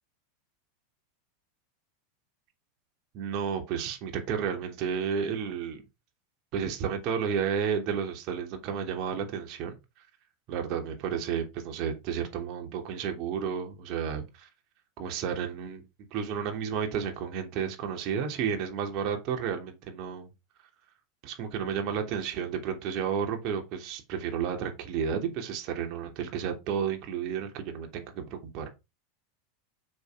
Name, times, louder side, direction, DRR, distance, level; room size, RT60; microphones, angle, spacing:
voice 1, 3.1-5.8 6.5-9.8 10.5-14.5 15.0-15.8 16.1-20.3 21.2-28.7, right 7 dB, 50° right, 3.1 m, -32 dB
6.9 x 6.6 x 5.0 m
hypercardioid pair, 100°, 0 cm